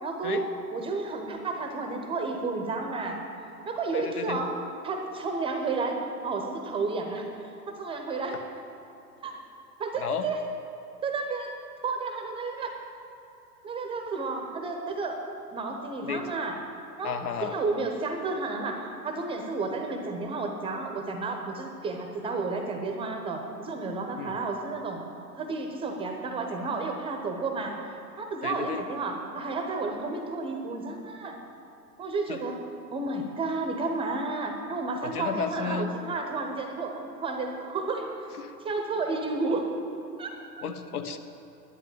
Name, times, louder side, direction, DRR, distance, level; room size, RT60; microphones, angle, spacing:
voice 1, 0.0-0.5 0.7-3.2 3.7-4.5 4.8-8.4 9.2-9.4 9.8-10.4 11.0-11.5 11.8-12.7 13.6-15.2 15.5-16.6 17.0-25.1 25.4-27.8 28.2-31.4 32.0-32.6 32.9-38.3 38.6-39.7 40.2-40.3, right 3 dB, 10° right, 4 dB, 0.8 m, -31 dB
voice 2, 3.9-4.4 10.0-10.3 16.0-16.3 17.0-17.6 24.2-24.4 28.4-28.8 32.3-32.4 35.0-35.9 38.4-38.5 39.1-39.2 40.6-41.2, left 6 dB, 65° left, 7 dB, 1.2 m, -33 dB
11.0 x 9.6 x 7.6 m, 3.0 s
figure-of-eight pair, 110°, 49 cm